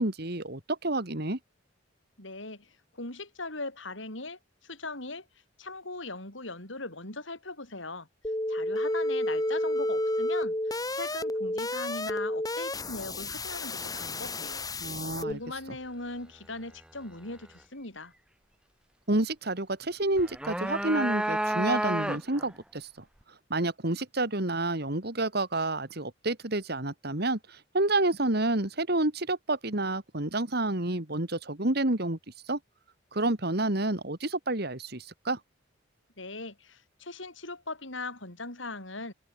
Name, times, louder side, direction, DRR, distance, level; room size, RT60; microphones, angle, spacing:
voice 1, 0.0-1.4 14.8-15.4 19.1-22.9 23.5-32.2 32.5-32.6 33.1-35.4, right 2 dB, 55° right, 2.6 m, -29 dB
voice 2, 2.2-5.3 5.6-8.1 8.5-14.7 15.3-18.1 36.2-39.1, left 2 dB, 75° left, 7.5 m, -40 dB
sound 1, 8.2-15.3, left 1 dB, 20° left, 5.4 m, -31 dB
sound 2, 20.2-22.5, right 1 dB, 5° right, 0.6 m, -30 dB
head